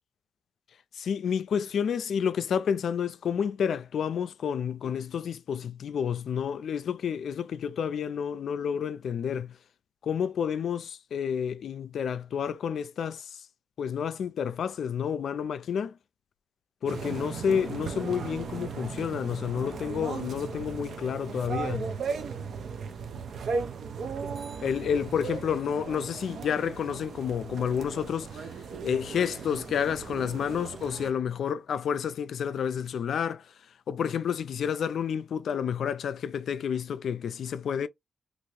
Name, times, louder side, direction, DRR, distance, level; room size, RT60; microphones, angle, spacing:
voice 1, 0.9-9.5 10.0-13.4 13.8-16.0 16.8-21.9 24.6-28.5 28.8-33.5 33.9-37.9, left 7 dB, 75° left, 0.3 m, -30 dB
sound 1, 16.9-31.1, right 5 dB, 75° right, 0.5 m, -37 dB
2.8 x 2.4 x 3.0 m
cardioid pair, 85°, 0 cm